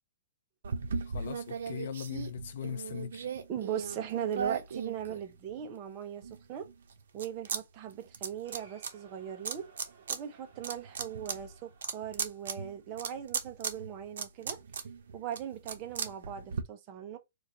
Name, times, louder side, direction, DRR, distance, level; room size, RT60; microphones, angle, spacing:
sound 1, 0.6-5.7 6.2-7.6 7.9-8.9 9.4-10.2 10.5-16.6, right 6 dB, 75° right, 0.7 m, -37 dB
voice 1, 1.1-3.3, left 8 dB, 55° left, 0.5 m, -39 dB
voice 2, 3.5-6.2 6.5-6.7 7.1-9.7 10.1-14.6 15.1-17.2, right 9 dB, 25° right, 0.7 m, -39 dB
Cheering, 8.4-13.2, right 5 dB, 50° right, 1.5 m, -60 dB
3.1 x 2.5 x 3.9 m
hypercardioid pair, 165°, 0 cm